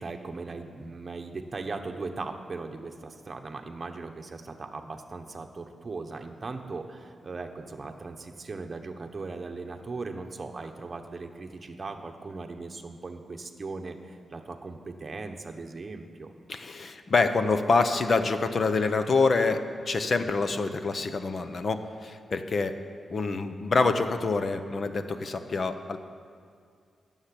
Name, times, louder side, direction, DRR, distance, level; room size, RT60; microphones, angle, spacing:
voice 1, 0.0-16.3, right 3 dB, 30° right, 4 dB, 1.0 m, -38 dB
voice 2, 16.5-22.8 23.1-26.0, left 4 dB, 40° left, 9 dB, 0.8 m, -26 dB
13.0 x 7.3 x 10.0 m, 2.3 s
wide cardioid pair, 145°, 0 cm